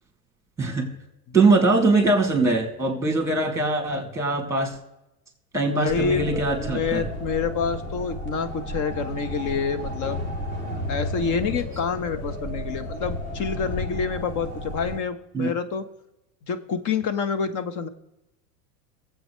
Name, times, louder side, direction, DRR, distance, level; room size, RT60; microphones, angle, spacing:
voice 1, 0.6-0.9 1.3-4.8 5.5-7.1 15.3-15.5, right 3 dB, 5° right, 2.9 m, -22 dB
voice 2, 5.7-10.2 10.9-15.8 16.5-17.9, left 5 dB, 40° left, 1.3 m, -27 dB
sound 1, 5.9-15.0, left 1 dB, 20° left, 2.6 m, -33 dB
23.0 x 8.2 x 3.2 m
hypercardioid pair, 110°, 47 cm